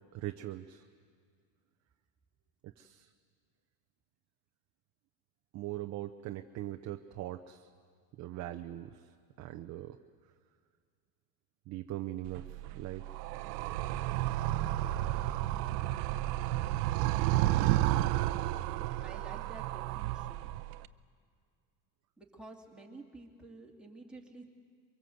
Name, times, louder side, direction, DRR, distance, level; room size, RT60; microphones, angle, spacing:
voice 1, 0.1-0.8 2.6-3.1 5.5-7.7 8.2-9.0 9.4-10.0 11.7-13.1, right 14 dB, 35° right, 6 dB, 0.7 m, -41 dB
Animal, 12.3-20.9, right 15 dB, 70° right, 0.8 m, -32 dB
voice 2, 19.0-20.5 22.2-24.5, right 2 dB, ahead, -2 dB, 2.7 m, -50 dB
23.5 x 22.5 x 7.9 m, 2.1 s
supercardioid pair, 140°, 49 cm